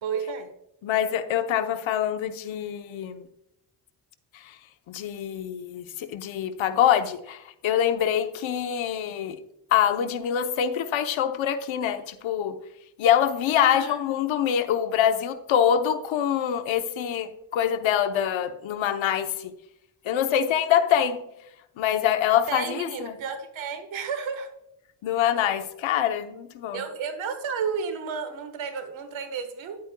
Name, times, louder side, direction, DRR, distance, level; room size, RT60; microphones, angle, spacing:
voice 1, 0.0-0.5 13.5-14.0 22.3-24.5 26.7-29.8, right 6 dB, 85° right, 1.4 m, -32 dB
voice 2, 0.8-3.3 4.3-4.5 4.9-9.4 9.7-12.6 13.0-19.5 20.0-21.2 21.8-23.2 25.0-26.8, left 9 dB, 90° left, 0.9 m, -25 dB
10.5 x 8.6 x 2.2 m
cardioid pair, 85°, 45 cm